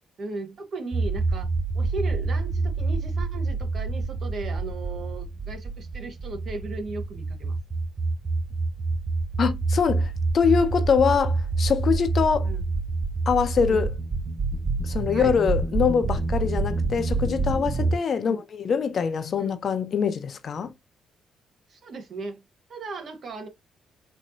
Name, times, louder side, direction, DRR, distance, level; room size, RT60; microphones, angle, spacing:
voice 1, 0.2-1.5 1.7-7.6 12.4-12.7 13.7-13.8 15.1-15.4 18.2-18.4 19.4-19.6 21.7-22.4 22.7-23.5, right 3 dB, 55° right, 1.2 m, -37 dB
sound 1, 0.9-18.0, right 3 dB, 30° right, 0.5 m, -27 dB
voice 2, 9.4-12.5 13.3-13.9 14.8-20.7, left 6 dB, 50° left, 0.6 m, -24 dB
4.3 x 2.8 x 2.6 m
cardioid pair, 90°, 0 cm